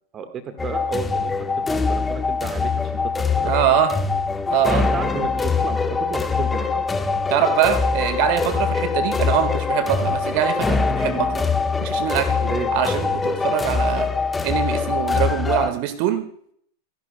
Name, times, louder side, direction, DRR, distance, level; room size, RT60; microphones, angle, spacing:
voice 1, 0.1-1.3 1.7-2.9 3.2-3.5 4.8-6.8 12.4-12.7, right 6 dB, 25° right, 8 dB, 1.5 m, -32 dB
sound 1, 0.6-15.7, left 4 dB, 10° left, 1.2 m, -23 dB
voice 2, 3.4-3.9 4.5-4.9 7.3-11.5 11.8-12.3 12.7-14.1 14.4-16.2, right 11 dB, 45° right, 10 dB, 1.7 m, -23 dB
27.5 x 11.0 x 2.2 m, 0.63 s
figure-of-eight pair, 90°, 0 cm